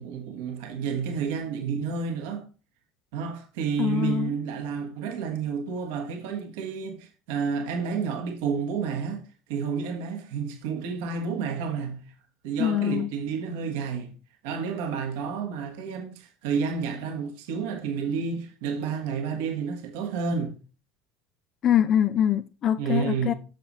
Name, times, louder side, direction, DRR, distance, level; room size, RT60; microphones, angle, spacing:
voice 1, 0.0-2.5 3.1-9.2 9.5-11.9 12.4-14.1 14.4-20.5 22.8-23.3, right 6 dB, 60° right, 1.4 m, -30 dB
voice 2, 3.8-4.3 12.6-13.1 21.6-23.3, left 10 dB, 40° left, 0.4 m, -24 dB
9.1 x 7.0 x 3.0 m
figure-of-eight pair, 70°, 0 cm